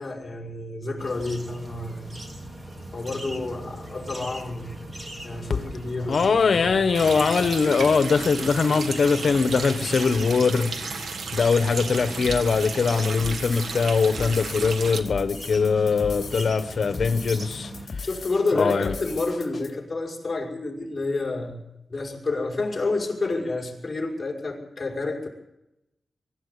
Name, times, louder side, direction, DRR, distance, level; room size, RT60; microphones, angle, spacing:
voice 1, 0.0-2.2 2.9-4.7 5.2-6.2 6.5-6.8 18.0-21.6 21.9-25.3, left 3 dB, 25° left, 5.5 m, -29 dB
sound 1, 1.0-17.9, right 1 dB, 30° right, 3.0 m, -40 dB
voice 2, 6.1-10.7 11.3-17.7 18.5-18.9, left 5 dB, 60° left, 1.4 m, -22 dB
Water tap faucet, 6.9-15.0, right 4 dB, 85° right, 1.6 m, -34 dB
sound 2, 12.2-19.7, left 4 dB, 45° left, 2.9 m, -38 dB
23.5 x 13.5 x 8.4 m
wide cardioid pair, 130°, 0 cm